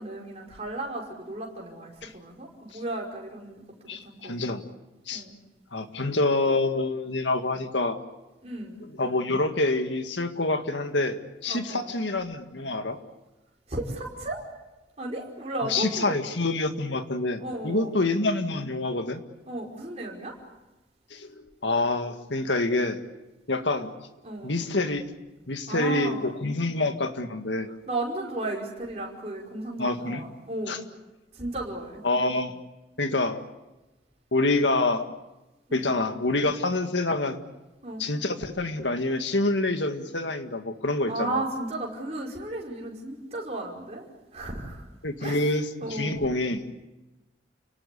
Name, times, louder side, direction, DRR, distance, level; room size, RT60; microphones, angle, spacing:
voice 1, 0.0-3.6 3.9-4.4 5.1-5.3 8.4-8.8 11.5-12.0 13.7-14.5 15.0-16.2 17.4-18.0 19.5-20.4 24.2-24.6 25.7-26.2 26.5-26.6 27.9-30.8 31.3-32.0 35.7-36.0 37.8-38.0 41.1-44.1 44.3-44.9 45.2-45.4 45.8-46.2, right 2 dB, 35° right, -2 dB, 5.1 m, -34 dB
voice 2, 3.9-4.6 5.1-5.2 5.7-8.0 9.0-13.0 15.7-19.2 21.1-23.0 23.5-23.9 24.4-25.0 25.5-27.7 29.8-30.2 30.7-30.8 32.0-32.5 33.0-33.4 34.3-35.1 35.7-37.4 38.0-41.4 45.0-46.6, left 2 dB, 85° left, 7 dB, 1.9 m, -27 dB
29.5 x 18.0 x 8.5 m, 1.1 s
head